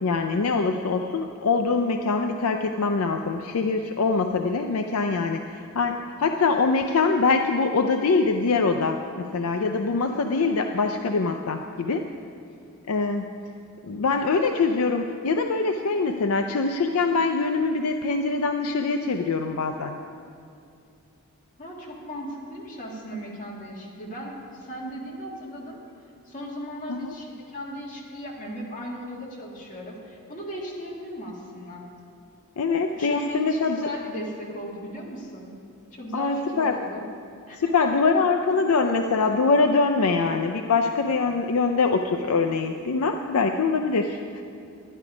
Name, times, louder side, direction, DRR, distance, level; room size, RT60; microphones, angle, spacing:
voice 1, 0.0-12.1 12.9-13.3 13.8-20.0 26.9-27.1 32.6-33.9 36.1-36.8 37.6-44.4, left 4 dB, 70° left, 5 dB, 0.5 m, -24 dB
voice 2, 21.6-25.8 26.2-31.9 32.9-35.5 35.9-37.1 37.5-37.9, equal, 35° left, -3 dB, 2.1 m, -37 dB
11.0 x 10.5 x 5.0 m, 2.5 s
head